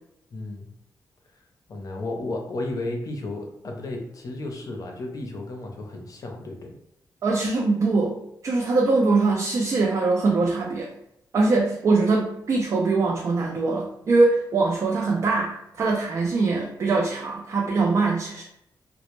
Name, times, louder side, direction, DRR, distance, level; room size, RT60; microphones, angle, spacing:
voice 1, 0.3-0.7 1.7-6.7, left 2 dB, 50° left, 2 dB, 0.5 m, -33 dB
voice 2, 7.2-8.1 8.4-10.9 11.3-18.4, right 3 dB, 45° right, 0 dB, 0.3 m, -22 dB
2.1 x 2.0 x 3.0 m, 0.78 s
cardioid pair, 105°, 7 cm